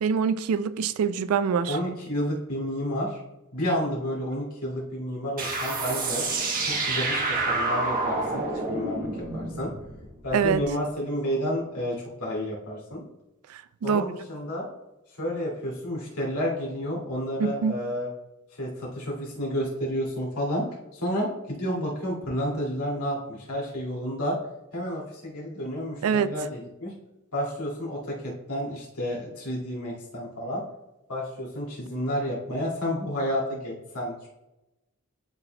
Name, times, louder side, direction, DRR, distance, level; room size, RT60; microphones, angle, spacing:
voice 1, 0.0-1.8 10.3-10.6 13.8-14.0 17.4-17.8 26.0-26.3, right 6 dB, 80° right, 0.3 m, -24 dB
voice 2, 1.7-3.2 3.5-6.2 6.6-9.1 9.3-9.7 10.2-11.9 12.2-13.0 13.8-14.7 15.2-18.1 18.6-20.6 20.9-24.4 24.7-26.9 27.3-30.6 31.1-34.3, equal, 90° left, 2.3 m, -30 dB
sound 1, 5.4-10.7, right 3 dB, 40° right, 1.2 m, -28 dB
12.0 x 4.2 x 2.2 m
head